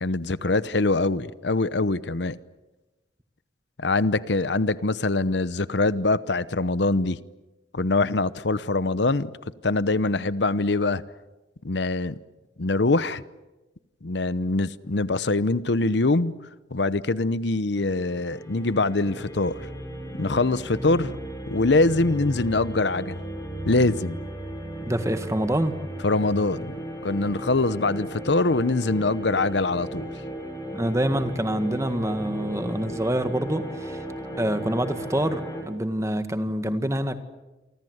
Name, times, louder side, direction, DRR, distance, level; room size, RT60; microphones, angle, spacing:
voice 1, 0.0-2.4 3.8-7.2 7.7-9.3 9.6-11.0 11.6-12.2 12.6-13.2 14.0-16.3 16.7-19.6 20.2-21.1 21.5-23.2 23.6-24.2 26.0-26.8 27.0-30.1, left 2 dB, 70° left, 0.9 m, -23 dB
sound 1, 17.7-35.6, right 1 dB, 20° left, 6.5 m, -35 dB
voice 2, 24.9-25.8 30.7-34.0 34.4-37.2, right 1 dB, 15° right, 1.8 m, -26 dB
29.0 x 25.0 x 8.0 m
head